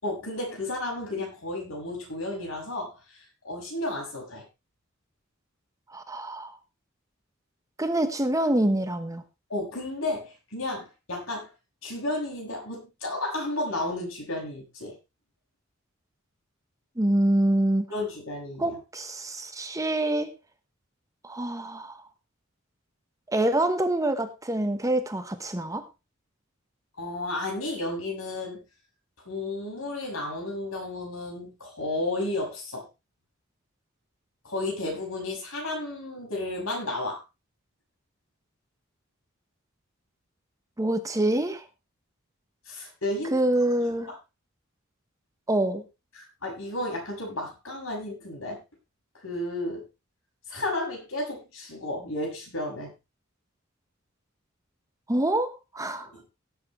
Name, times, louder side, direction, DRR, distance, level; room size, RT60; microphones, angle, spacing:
voice 1, 0.0-3.2 3.4-4.4 9.5-11.5 11.8-15.0 17.9-18.8 27.0-28.6 29.2-32.9 34.4-37.2 42.7-43.4 46.4-48.6 49.2-49.8 50.5-52.9 56.1-56.2, left 2 dB, 70° left, 0 dB, 6.7 m, -32 dB
voice 2, 5.9-6.6 7.8-9.2 17.0-17.9 18.6-20.3 21.2-22.0 23.3-25.8 40.8-41.6 43.3-44.1 45.5-45.8 55.1-56.1, right 1 dB, 15° right, 8 dB, 1.1 m, -26 dB
17.5 x 8.7 x 3.2 m, 0.26 s
head